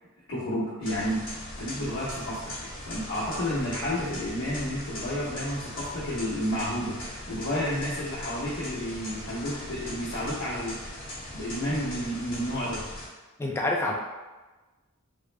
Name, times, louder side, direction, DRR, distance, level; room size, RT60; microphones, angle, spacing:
voice 1, 0.3-1.2 1.6-2.5 2.8-7.0 7.3-10.8 11.3-12.8, equal, 70° left, -11 dB, 1.0 m, -31 dB
sound 1, 0.8-13.1, left 1 dB, 40° left, 1.3 m, -39 dB
voice 2, 13.4-13.9, left 2 dB, 10° left, -1 dB, 0.3 m, -27 dB
3.5 x 2.0 x 3.2 m, 1.2 s
head